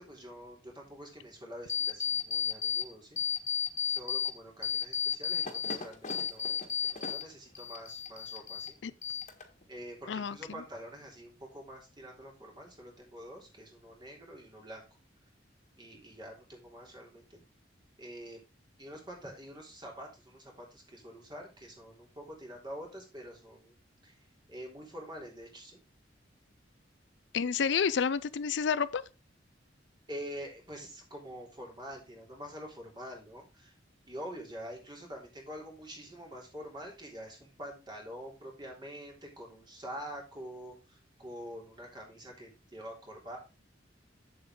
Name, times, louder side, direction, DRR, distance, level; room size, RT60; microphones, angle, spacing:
voice 1, 0.0-3.2 3.9-6.5 7.1-8.8 9.7-14.9 15.8-17.4 18.0-18.4 18.8-23.7 24.0-24.1 24.5-25.8 30.1-33.7 34.1-43.4, equal, 25° right, 3.4 m, -46 dB
sound 1, 1.7-2.8 3.2-4.3 4.6-7.2 7.5-8.7 9.0-9.6, left 8 dB, 40° left, 1.6 m, -33 dB
voice 2, 27.3-29.0, left 6 dB, 70° left, 0.5 m, -29 dB
7.9 x 7.7 x 3.7 m
head